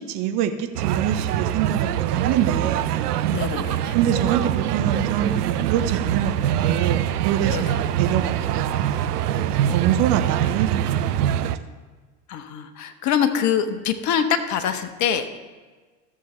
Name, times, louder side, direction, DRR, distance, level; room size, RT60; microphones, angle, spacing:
voice 1, 0.1-2.9 3.9-11.5, right 9 dB, 50° right, 7 dB, 1.1 m, -26 dB
sound 1, 0.7-11.6, right 11 dB, 75° right, 0.6 m, -23 dB
voice 2, 3.3-3.9 7.5-7.8 9.6-9.8 12.3-15.4, left 8 dB, 40° left, 9 dB, 1.0 m, -24 dB
14.5 x 6.8 x 3.3 m, 1.4 s
hypercardioid pair, 80°, 47 cm